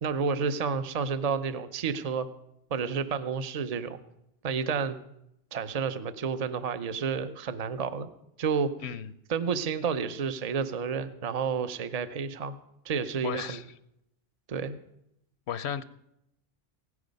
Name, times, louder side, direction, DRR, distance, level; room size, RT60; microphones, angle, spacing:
voice 1, 0.0-2.3 2.7-4.0 4.4-5.0 5.5-8.1 8.4-8.7 9.3-12.5 12.8-13.6 14.5-14.7, right 6 dB, 40° right, 11 dB, 0.7 m, -30 dB
voice 2, 13.2-13.6 15.5-15.8, left 8 dB, 80° left, 14 dB, 0.9 m, -34 dB
16.0 x 9.7 x 5.2 m, 0.81 s
omnidirectional pair, 1.1 m